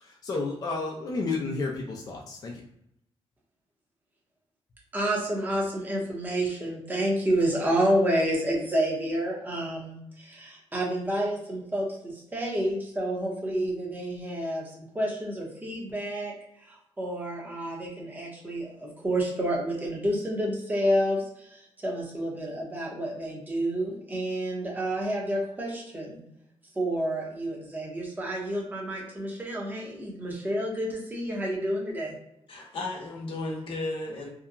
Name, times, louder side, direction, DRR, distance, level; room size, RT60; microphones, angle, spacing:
voice 1, 0.0-2.6, left 3 dB, 35° left, -1 dB, 0.4 m, -31 dB
voice 2, 4.9-14.7 14.9-26.2 26.7-32.1, right 1 dB, 15° right, -3 dB, 0.8 m, -29 dB
voice 3, 32.5-34.3, left 2 dB, 55° left, -1 dB, 0.8 m, -34 dB
2.8 x 2.2 x 2.4 m, 0.77 s
wide cardioid pair, 130°, 11 cm